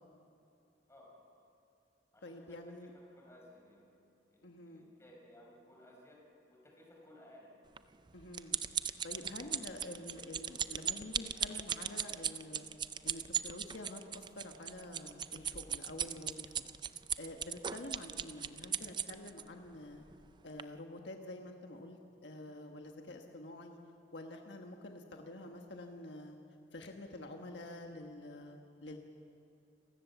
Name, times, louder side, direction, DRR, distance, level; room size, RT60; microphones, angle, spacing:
voice 1, 0.9-1.3 2.1-3.9 4.3-6.2 6.5-7.5, left 1 dB, 15° left, -1 dB, 5.1 m, -59 dB
voice 2, 2.2-2.9 4.4-4.9 8.1-8.6 8.8-12.7 13.0-16.6 17.2-20.0 20.4-23.8 24.1-26.4 26.7-29.0, left 1 dB, 75° left, 3 dB, 1.4 m, -48 dB
sound 1, 7.8-19.4 20.1-20.3 20.6-20.7, right 8 dB, 25° right, 0.4 m, -38 dB
28.5 x 15.5 x 7.0 m, 2.7 s
head